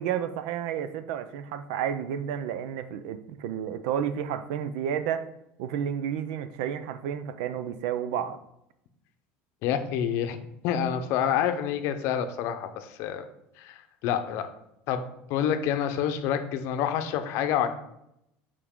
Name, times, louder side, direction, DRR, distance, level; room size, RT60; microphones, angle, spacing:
voice 1, 0.0-5.3 5.6-8.4, right 9 dB, 85° right, 12 dB, 0.5 m, -31 dB
voice 2, 9.6-10.4 10.6-13.2 13.6-14.5 14.9-15.0 15.3-17.7, left 9 dB, 60° left, 8 dB, 0.7 m, -27 dB
7.0 x 4.8 x 3.7 m, 0.81 s
cardioid pair, 155°, 5 cm